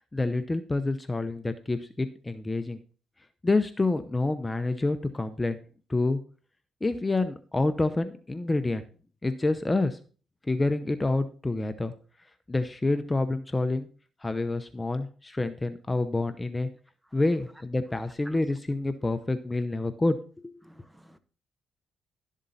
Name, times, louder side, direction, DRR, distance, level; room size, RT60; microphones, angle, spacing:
voice 1, 0.1-2.8 3.4-5.6 5.9-6.2 6.8-8.8 9.2-10.0 10.5-11.9 12.5-13.9 14.2-16.7 17.1-20.2 20.4-20.5, left 2 dB, 15° left, 0.8 m, -27 dB
voice 2, 17.9-18.4 20.6-21.2, right 1 dB, 10° right, 1.0 m, -53 dB
12.0 x 7.4 x 4.1 m
cardioid pair, 90°, 0 cm